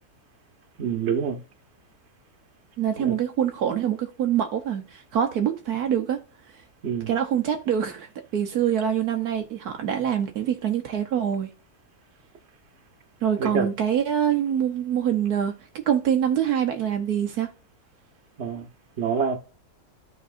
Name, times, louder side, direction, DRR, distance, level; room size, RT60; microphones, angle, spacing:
voice 1, 0.8-1.4 3.0-3.1 6.8-7.1 13.4-13.7 18.4-18.7 19.0-19.4, right 6 dB, 45° right, 1.5 m, -26 dB
voice 2, 2.8-6.2 7.1-11.5 13.2-17.5, right 9 dB, 75° right, 1.4 m, -25 dB
13.5 x 4.7 x 2.5 m
omnidirectional pair, 1.7 m